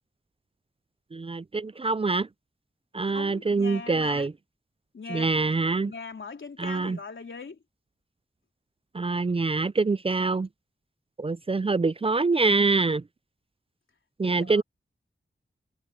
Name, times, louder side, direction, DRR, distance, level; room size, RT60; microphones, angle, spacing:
voice 1, 1.1-2.3 2.9-4.3 5.1-5.9 6.6-7.0 8.9-10.5 11.2-13.0 14.2-14.6, right 3 dB, 30° right, 0.4 m, -25 dB
voice 2, 3.1-4.3 4.9-5.5 5.9-7.6 14.2-14.6, left 4 dB, 80° left, 3.9 m, -40 dB
wide cardioid pair, 65°, 20 cm